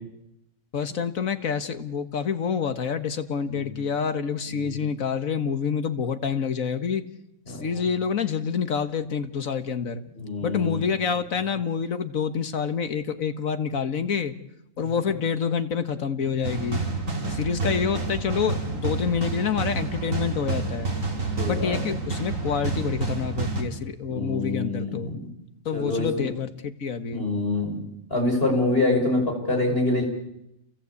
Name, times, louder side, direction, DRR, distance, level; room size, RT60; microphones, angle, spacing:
voice 1, 0.7-7.1 7.5-10.0 10.4-14.3 14.8-16.8 17.3-20.9 21.4-25.1 25.7-27.2, left 6 dB, 85° left, 10 dB, 1.8 m, -27 dB
voice 2, 3.4-3.7 4.5-4.8 7.5-7.8 10.2-10.9 17.3-18.0 21.4-21.8 24.1-25.3 25.7-26.3 27.1-27.7 28.1-30.0, left 2 dB, 45° left, 2 dB, 6.4 m, -26 dB
sound 1, 16.4-23.6, right 3 dB, 75° right, 4.0 m, -29 dB
29.0 x 23.5 x 8.4 m, 0.84 s
omnidirectional pair, 1.4 m